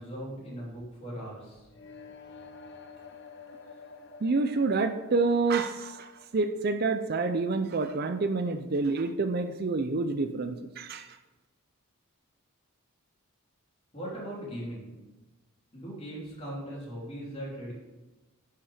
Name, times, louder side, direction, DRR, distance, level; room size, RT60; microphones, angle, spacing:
voice 1, 0.0-1.7 13.9-15.0 15.7-17.7, equal, 25° left, -5 dB, 3.4 m, -39 dB
sound 1, 1.7-7.6, left 4 dB, 50° left, 0.9 m, -50 dB
voice 2, 4.2-11.1, right 3 dB, 45° right, 8 dB, 0.5 m, -28 dB
10.5 x 5.8 x 5.0 m, 1.1 s
head